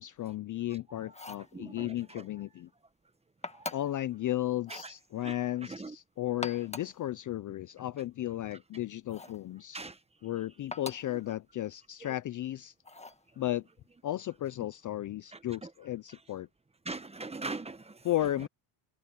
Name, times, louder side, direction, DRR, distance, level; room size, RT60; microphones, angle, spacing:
voice 1, 0.0-2.7 3.7-9.8 10.2-12.7 13.4-13.7 14.0-16.5 18.0-18.5, left 14 dB, 40° left, 0.5 m, -34 dB
voice 2, 0.7-2.3 3.5-3.8 4.7-4.9 5.2-6.0 9.7-10.0 12.0-12.1 15.3-15.7 16.8-18.5, right 3 dB, 10° right, 1.2 m, -43 dB
sound 1, 1.1-1.5 3.4-4.0 4.6-5.0 6.3-7.0 9.1-9.4 10.7-11.2 12.8-13.2, left 3 dB, 15° left, 1.6 m, -42 dB
open air
cardioid pair, 120°, 50 cm